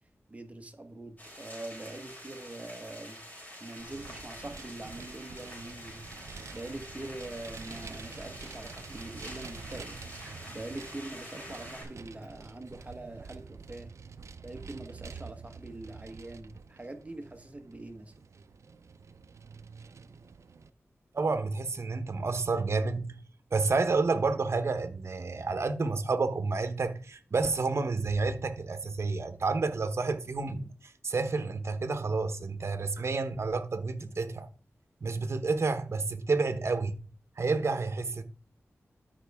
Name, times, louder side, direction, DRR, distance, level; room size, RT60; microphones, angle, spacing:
voice 1, 0.3-3.2 3.6-6.0 6.5-10.0 10.5-13.9 14.4-18.1, right 2 dB, 25° right, 1.2 m, -43 dB
sound 1, 1.2-11.8, equal, 30° left, 4.3 m, -47 dB
Vehicle, 3.8-20.7, right 5 dB, 75° right, 0.6 m, -48 dB
voice 2, 21.1-23.2 23.5-34.5 35.0-36.9 37.4-38.2, right 3 dB, 60° right, 1.1 m, -30 dB
12.5 x 5.3 x 3.6 m
wide cardioid pair, 85°, 5 cm